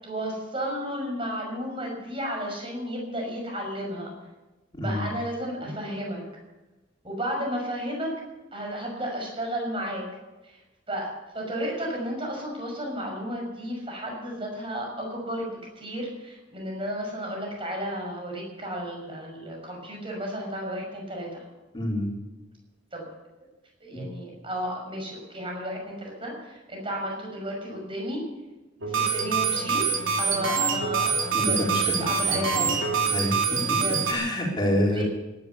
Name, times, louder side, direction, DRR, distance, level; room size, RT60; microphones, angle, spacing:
voice 1, 0.0-4.1 4.8-6.2 7.0-8.1 8.5-10.0 10.4-10.6 10.9-21.4 22.9-23.0 23.8-28.2 28.8-29.9 30.2-32.8 33.8-34.0 34.9-35.0, equal, 25° right, 0 dB, 6.0 m, -33 dB
voice 2, 4.7-5.1 5.6-5.7 21.7-22.1 23.9-24.0 31.3-32.7 33.1-33.8 34.1-35.0, equal, 25° left, -2 dB, 4.2 m, -28 dB
sound 1, 28.8-34.1, right 5 dB, 90° right, 3.1 m, -25 dB
18.0 x 11.5 x 6.9 m, 1.1 s
head